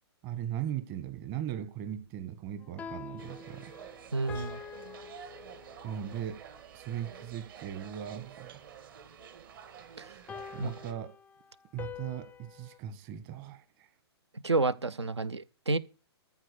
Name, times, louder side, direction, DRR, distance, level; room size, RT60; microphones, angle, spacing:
voice 1, 0.2-3.7 5.8-6.4 6.7-8.6 10.5-11.1 11.7-13.9, right 10 dB, 35° right, 1.5 m, -38 dB
sound 1, 2.6-6.0 10.3-12.8, left 7 dB, 10° left, 0.4 m, -46 dB
sound 2, 3.2-10.9, right 8 dB, 50° right, 1.9 m, -49 dB
voice 2, 4.1-4.6 10.0-10.1 10.6-10.7 14.4-15.8, right 3 dB, 90° right, 0.7 m, -30 dB
14.0 x 4.8 x 6.7 m
figure-of-eight pair, 120°, 14 cm